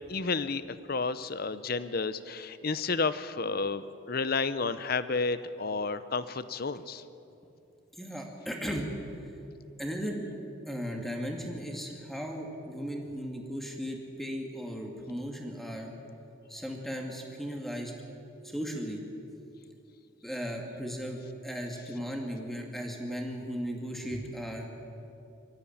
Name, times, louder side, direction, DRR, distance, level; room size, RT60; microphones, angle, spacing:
voice 1, 0.1-7.0, left 4 dB, 50° left, 14 dB, 0.7 m, -31 dB
voice 2, 8.0-8.9 9.8-10.2 10.7-15.9 16.5-17.9 18.4-19.0 20.2-24.7, equal, ahead, 1 dB, 2.4 m, -36 dB
23.5 x 14.0 x 8.9 m, 2.7 s
head